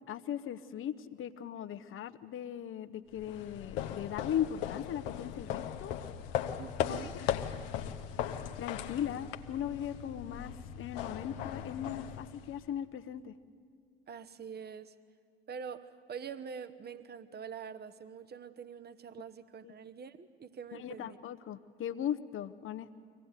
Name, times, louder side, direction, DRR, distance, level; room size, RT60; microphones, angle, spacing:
voice 1, 0.1-5.9 6.9-7.4 8.6-13.3 19.6-19.7 20.7-23.0, left 10 dB, 45° left, 13 dB, 0.9 m, -38 dB
sound 1, 3.1-12.8, left 9 dB, 70° left, 1.0 m, -38 dB
voice 2, 6.6-7.1 14.1-14.9 15.5-21.2, right 7 dB, 35° right, 12 dB, 1.0 m, -45 dB
24.5 x 17.5 x 8.2 m, 2.1 s
figure-of-eight pair, 55°, 29 cm